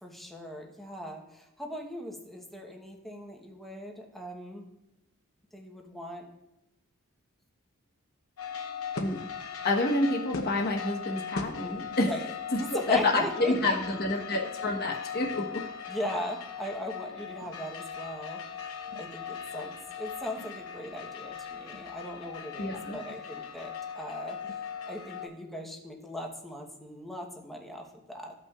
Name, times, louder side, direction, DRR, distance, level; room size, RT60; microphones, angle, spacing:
voice 1, 0.0-4.7 5.5-6.3 12.1-12.3 12.6-14.5 15.9-18.4 18.9-24.4 24.9-28.3, equal, ahead, 0 dB, 1.0 m, -39 dB
sound 1, 8.4-25.3, left 6 dB, 70° left, 0.9 m, -39 dB
voice 2, 9.6-12.1 12.7-15.6 22.6-23.0, left 2 dB, 50° left, -1 dB, 1.2 m, -28 dB
14.5 x 5.6 x 2.4 m, 0.90 s
head